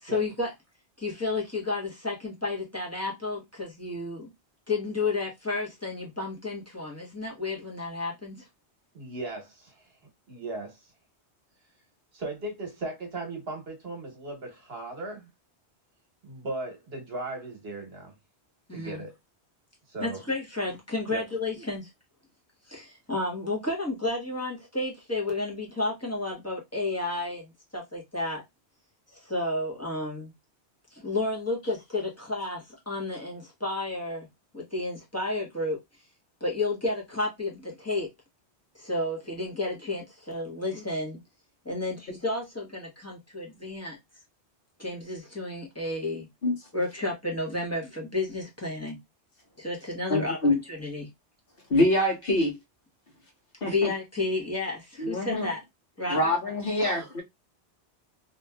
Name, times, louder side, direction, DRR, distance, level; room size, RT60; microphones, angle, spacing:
voice 1, 0.0-0.5 1.0-4.3 4.7-8.4 18.7-19.0 20.0-21.9 22.7-28.4 29.1-30.3 30.9-34.3 34.5-35.8 36.4-38.1 38.7-41.2 41.6-44.0 44.8-46.3 46.7-49.0 49.6-50.4 50.7-51.1 53.6-55.6 56.0-56.2, left 2 dB, 15° left, 1.1 m, -31 dB
voice 2, 8.9-9.9 10.3-10.8 12.1-15.3 16.2-18.2 18.7-19.1 19.9-20.2 21.1-21.2 56.8-57.1, right 2 dB, 65° right, 1.3 m, -37 dB
voice 3, 50.1-50.6 51.7-52.6 53.6-53.9 55.0-55.5 56.1-57.2, left 1 dB, 55° left, 1.3 m, -25 dB
2.9 x 2.7 x 2.2 m
omnidirectional pair, 1.1 m